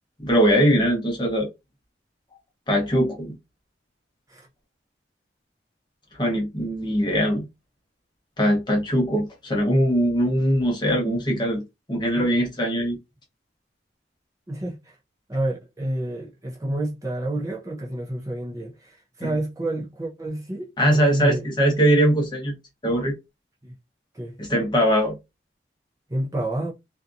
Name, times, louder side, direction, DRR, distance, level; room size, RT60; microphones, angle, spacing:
voice 1, 0.2-1.5 2.7-3.3 6.2-7.4 8.4-11.6 11.9-13.0 19.2-19.3 20.8-22.5 22.8-23.1 24.4-25.2, equal, 25° left, 0.8 m, -21 dB
voice 2, 14.5-15.0 15.3-21.5 23.6-23.7 24.1-24.3 26.1-26.7, right 1 dB, 20° right, 0.5 m, -29 dB
2.7 x 2.3 x 2.5 m
head